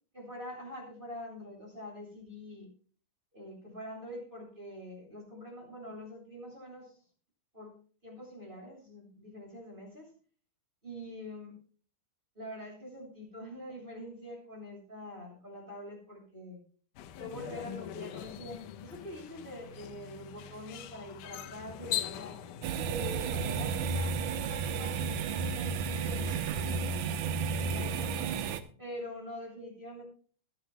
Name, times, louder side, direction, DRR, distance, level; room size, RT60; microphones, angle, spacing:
voice 1, 0.1-2.7 3.3-7.0 7.5-7.7 8.0-10.1 10.8-11.5 12.3-16.6 17.2-22.4 22.7-27.2 27.5-28.2 28.8-30.0, left 1 dB, 15° right, -1 dB, 7.4 m, -45 dB
sound 1, 17.0-22.7, left 11 dB, 80° left, 2.3 m, -41 dB
sound 2, 22.6-28.6, right 5 dB, 70° right, 2.3 m, -32 dB
21.0 x 12.0 x 2.3 m, 0.42 s
omnidirectional pair, 3.7 m